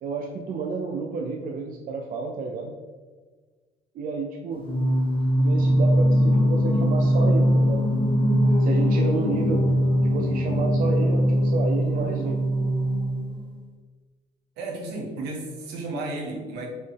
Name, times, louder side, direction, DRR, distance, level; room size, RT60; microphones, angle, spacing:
voice 1, 0.0-2.7 3.9-4.6 5.3-7.8 8.6-9.7 10.0-12.4, right 4 dB, 55° right, 1 dB, 0.5 m, -30 dB
Singing, 4.6-13.5, equal, 30° left, 0.7 m, -21 dB
voice 2, 14.6-16.7, right 2 dB, 80° right, -1 dB, 1.1 m, -33 dB
4.4 x 3.1 x 3.3 m, 1.4 s
cardioid pair, 110°, 17 cm